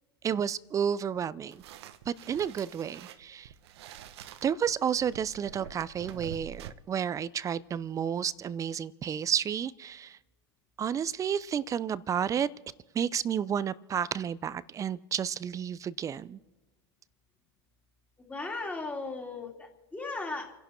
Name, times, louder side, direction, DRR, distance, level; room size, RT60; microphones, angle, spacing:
voice 1, 0.2-1.6 2.1-3.5 4.4-10.2 10.8-12.5 12.9-16.4, right 8 dB, 20° right, 18 dB, 0.6 m, -31 dB
sound 1, 1.5-6.7, right 10 dB, 70° right, 1.1 m, -47 dB
voice 2, 18.3-20.5, left 3 dB, 10° left, 1 dB, 3.0 m, -37 dB
29.0 x 11.0 x 4.5 m, 1.1 s
hypercardioid pair, 110°, 14 cm